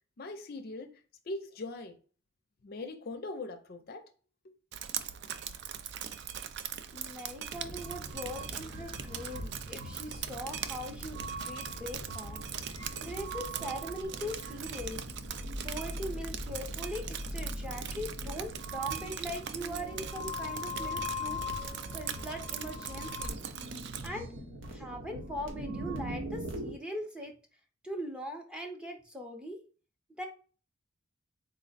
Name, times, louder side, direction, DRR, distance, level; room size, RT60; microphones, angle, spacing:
voice 1, 0.2-2.0 2.6-4.1 4.4-4.5, left 2 dB, 50° left, 0.5 m, -41 dB
Drip, 4.7-24.1, right 9 dB, 60° right, 0.3 m, -41 dB
voice 2, 6.9-12.4 13.0-15.0 15.6-23.4 24.0-24.3 24.7-27.3 27.8-29.6 30.2-30.3, equal, 5° right, 0.5 m, -41 dB
sound 1, 7.5-26.7, equal, 75° right, 1.0 m, -40 dB
4.0 x 2.0 x 4.0 m
head